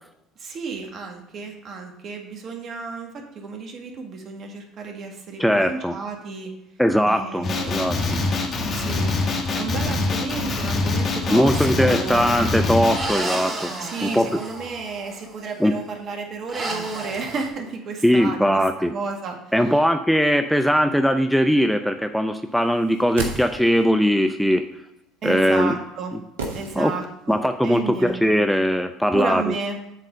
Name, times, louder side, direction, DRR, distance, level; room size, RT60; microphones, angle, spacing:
voice 1, 0.4-6.5 7.1-8.1 8.7-9.1 9.5-12.3 13.8-19.8 25.2-26.1 26.5-28.2 29.1-29.8, right 4 dB, 50° right, 2 dB, 1.7 m, -32 dB
voice 2, 5.4-6.0 6.8-8.2 11.3-13.7 14.0-14.3 15.6-15.7 18.0-18.9 19.5-24.6 25.2-25.7 26.8-26.9 27.3-29.5, equal, ahead, 7 dB, 0.5 m, -20 dB
Male speech man speaking, 7.4-13.1, left 3 dB, 45° left, 1.6 m, -24 dB
sound 1, 11.3-11.8 12.9-15.3 16.5-17.5, right 2 dB, 30° right, 2.8 m, -32 dB
sound 2, 22.8-24.0 26.4-27.3 27.6-27.7, right 3 dB, 85° right, 1.1 m, -32 dB
8.3 x 4.1 x 6.5 m, 0.88 s
hypercardioid pair, 65°, 0 cm